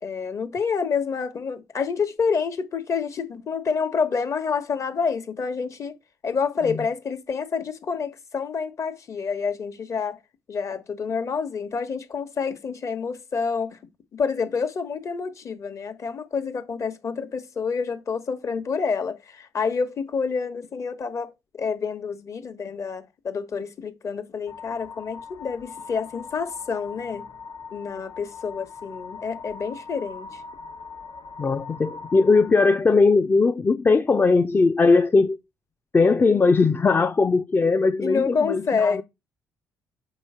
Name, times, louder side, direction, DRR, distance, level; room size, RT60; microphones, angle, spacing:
voice 1, 0.0-6.0 6.2-10.2 10.5-13.8 14.1-27.3 27.7-30.4 38.0-39.0, left 5 dB, 45° left, 1.2 m, -28 dB
sound 1, 24.5-32.5, left 5 dB, 80° left, 1.0 m, -41 dB
voice 2, 31.4-35.4 35.9-39.0, left 4 dB, 30° left, 0.5 m, -19 dB
5.8 x 3.1 x 5.5 m
supercardioid pair, 60°, 7 cm